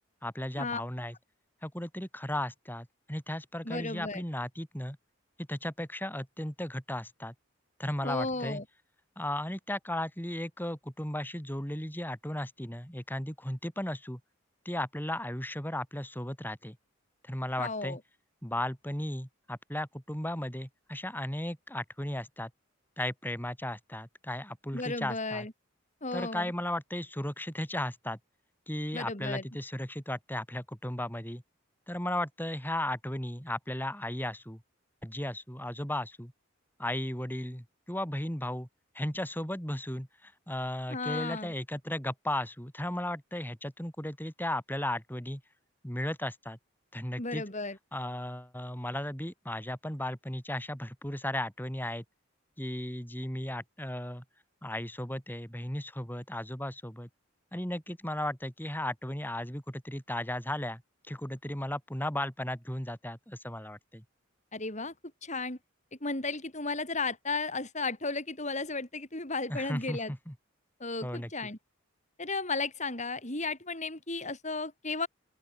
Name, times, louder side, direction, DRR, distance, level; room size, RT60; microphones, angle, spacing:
voice 1, 0.2-1.1 1.6-5.0 5.4-7.3 7.8-8.6 9.2-14.2 14.7-16.8 17.3-18.0 18.4-22.5 23.0-25.5 26.1-28.2 28.7-31.4 31.9-34.6 35.0-36.3 36.8-38.7 39.0-45.4 45.8-46.6 46.9-47.4 47.9-52.0 52.6-54.2 54.6-57.1 57.5-60.8 61.1-64.0 69.5-70.3 71.0-71.3, left 1 dB, 10° left, 7.1 m, -35 dB
voice 2, 3.6-4.2 8.0-8.6 17.6-18.0 24.7-25.5 26.0-26.5 28.9-29.4 40.9-41.5 47.2-47.8 64.5-64.9 65.2-65.6 66.0-70.1 70.8-71.6 72.2-75.1, left 3 dB, 35° left, 5.1 m, -34 dB
open air
head